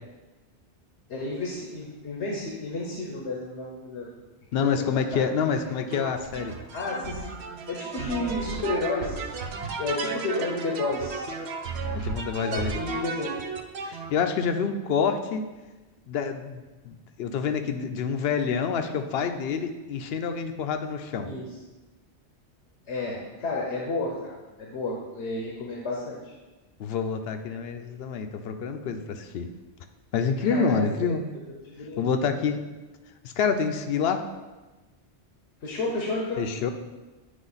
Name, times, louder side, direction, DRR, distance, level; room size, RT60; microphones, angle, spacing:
voice 1, 1.1-4.1 4.6-4.7 5.1-5.2 6.7-7.3 7.7-9.2 9.6-11.3 12.4-13.3 21.3-21.5 22.9-24.3 24.6-26.3 27.8-27.9 30.4-31.2 31.5-32.1 35.6-36.4, left 2 dB, 85° left, -2 dB, 1.2 m, -31 dB
voice 2, 4.5-6.5 11.9-12.8 13.8-15.4 16.1-21.3 26.8-29.5 30.1-31.2 32.0-32.6 33.2-34.2 36.4-36.7, left 6 dB, 70° left, 7 dB, 0.8 m, -27 dB
sound 1, 5.9-14.1, right 4 dB, 75° right, 0.9 m, -34 dB
9.1 x 3.3 x 3.9 m, 1.2 s
omnidirectional pair, 1.1 m